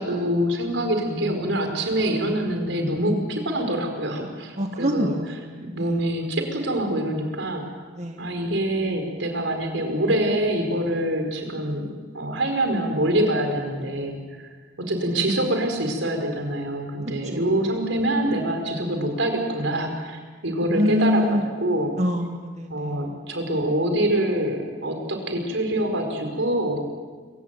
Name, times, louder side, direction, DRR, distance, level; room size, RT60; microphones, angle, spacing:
voice 1, 0.0-5.1 5.7-7.6 8.2-11.8 12.1-14.5 14.9-21.2 21.6-22.0 22.7-26.8, right 1 dB, 90° right, 4 dB, 4.7 m, -25 dB
voice 2, 4.6-6.1 8.0-8.2 17.3-17.5 20.7-21.4 22.0-23.2, left 1 dB, 40° right, 4 dB, 1.5 m, -25 dB
26.0 x 16.0 x 9.2 m, 1.5 s
head